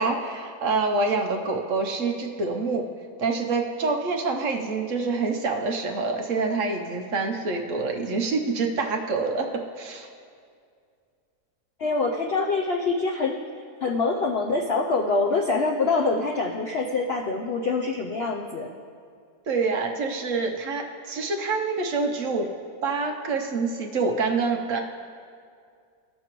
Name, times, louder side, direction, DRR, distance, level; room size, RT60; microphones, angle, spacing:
voice 1, 0.0-2.9 3.2-9.5 9.8-10.1 19.5-22.5 22.8-24.8, right 4 dB, 60° right, 2 dB, 1.0 m, -26 dB
voice 2, 11.8-13.4 13.8-18.7, left 3 dB, 80° left, 0 dB, 0.5 m, -25 dB
15.5 x 6.6 x 3.0 m, 2.2 s
omnidirectional pair, 1.8 m